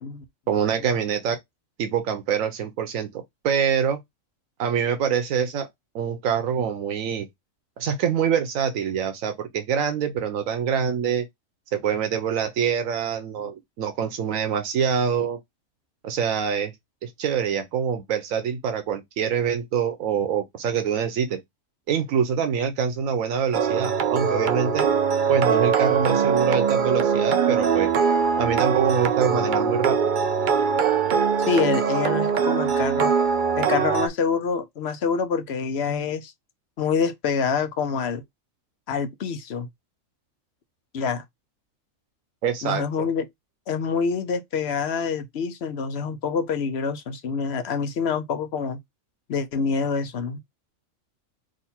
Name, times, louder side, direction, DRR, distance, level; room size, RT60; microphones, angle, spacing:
voice 1, 0.5-1.4 1.8-4.0 4.6-5.7 5.9-7.3 7.8-11.3 11.7-15.4 16.0-16.7 17.0-21.4 21.9-24.9 25.3-27.9 28.4-30.0 42.4-43.1, right 7 dB, 90° right, 1.1 m, -25 dB
sound 1, 23.5-34.1, right 6 dB, 55° right, 0.6 m, -22 dB
voice 2, 31.4-33.1 33.6-36.3 36.8-38.2 38.9-39.7 40.9-41.2 42.6-43.3 43.7-48.8 49.3-50.4, left 5 dB, 60° left, 0.9 m, -26 dB
3.8 x 2.6 x 4.2 m
omnidirectional pair, 1.3 m